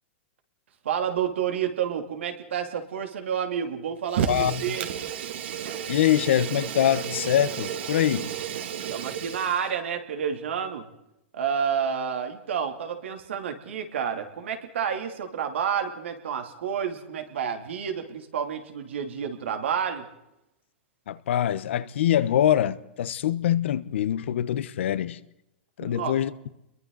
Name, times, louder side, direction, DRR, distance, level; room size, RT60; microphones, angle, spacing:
voice 1, 0.8-4.9 8.9-10.9 11.3-20.1 25.8-26.2, right 8 dB, 90° right, 2.9 m, -29 dB
Fire, 4.1-9.7, right 9 dB, 70° right, 2.5 m, -32 dB
voice 2, 4.3-4.8 5.9-8.3 21.1-25.2 25.8-26.3, left 11 dB, 80° left, 1.0 m, -24 dB
29.5 x 22.5 x 4.0 m
supercardioid pair, 150°, 6 cm